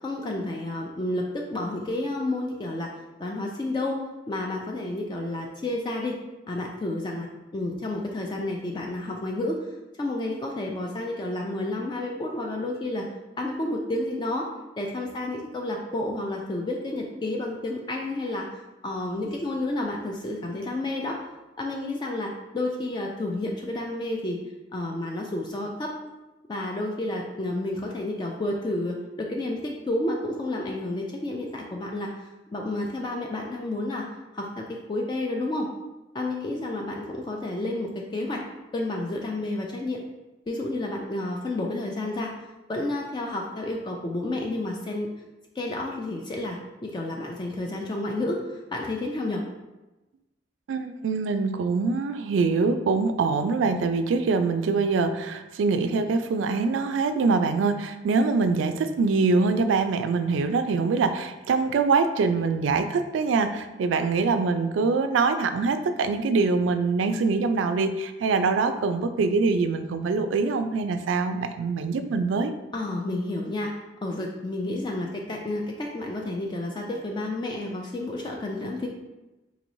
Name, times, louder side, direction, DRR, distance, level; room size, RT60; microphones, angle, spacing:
voice 1, 0.0-2.9 3.2-6.2 6.5-7.3 7.5-9.6 10.0-13.1 13.4-14.5 14.8-18.5 18.8-21.2 21.6-24.4 24.7-25.9 26.5-34.0 34.3-35.7 36.1-38.4 38.7-40.0 40.5-42.3 42.7-45.1 45.6-49.4 72.7-73.7 74.0-78.9, left 2 dB, 25° left, 0 dB, 0.3 m, -30 dB
voice 2, 50.7-72.5, right 4 dB, 90° right, 9 dB, 0.3 m, -24 dB
3.9 x 3.0 x 2.6 m, 1.1 s
head